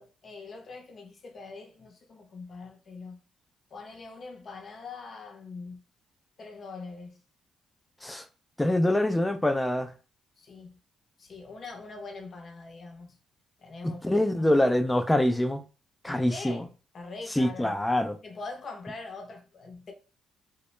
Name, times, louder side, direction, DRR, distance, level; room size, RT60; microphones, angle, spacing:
voice 1, 0.0-3.2 3.7-5.8 6.4-7.2 10.4-10.8 11.2-13.2 13.6-14.7 16.1-17.7 18.2-19.9, left 3 dB, 50° left, 0.6 m, -43 dB
voice 2, 8.6-9.9 14.0-15.6 16.0-16.6 17.4-18.2, left 1 dB, 10° left, 0.3 m, -25 dB
2.1 x 2.0 x 3.1 m
cardioid pair, 90°, 0 cm